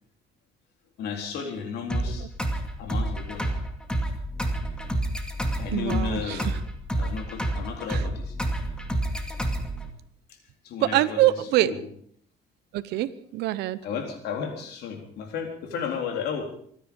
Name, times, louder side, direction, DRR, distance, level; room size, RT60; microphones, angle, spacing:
voice 1, 1.0-2.3 2.8-3.6 5.6-6.5 7.0-8.3 10.6-11.8 13.8-16.4, left 6 dB, 75° left, 3 dB, 3.8 m, -33 dB
sound 1, 1.9-9.9, right 1 dB, 5° left, 2.3 m, -29 dB
voice 2, 5.7-6.4 7.9-8.0 10.8-11.7 12.7-13.8, right 15 dB, 80° right, 15 dB, 0.8 m, -24 dB
25.0 x 10.0 x 5.4 m, 0.63 s
cardioid pair, 110°, 17 cm